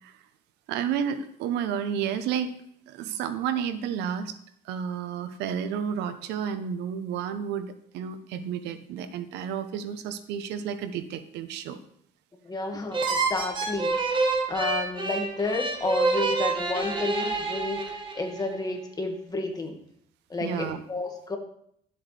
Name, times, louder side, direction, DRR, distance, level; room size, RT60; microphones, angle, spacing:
voice 1, 0.7-2.5 2.9-4.3 4.6-11.8 20.4-20.8, right 8 dB, 85° right, 11 dB, 0.9 m, -31 dB
voice 2, 12.4-19.7 20.3-21.4, left 3 dB, 25° left, 2 dB, 1.9 m, -31 dB
sound 1, 12.9-18.4, right 3 dB, 30° right, 1.6 m, -27 dB
11.5 x 7.9 x 3.4 m, 0.68 s
cardioid pair, 110°, 17 cm